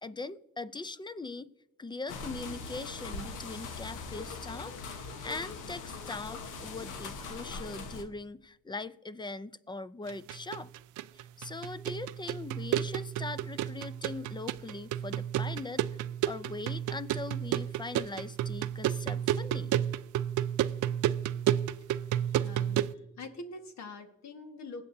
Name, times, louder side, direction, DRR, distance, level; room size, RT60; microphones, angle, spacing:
voice 1, 0.0-1.5 1.8-10.7 11.1-16.0 16.3-19.7, left 3 dB, 15° left, 16 dB, 0.5 m, -41 dB
sound 1, 2.1-8.0, left 4 dB, 90° left, 1.3 m, -41 dB
sound 2, 10.1-22.9, right 11 dB, 80° right, 0.5 m, -32 dB
voice 2, 22.3-24.8, left 3 dB, 65° left, 6 dB, 1.6 m, -45 dB
20.5 x 8.1 x 2.7 m, 0.86 s
cardioid pair, 90°, 30 cm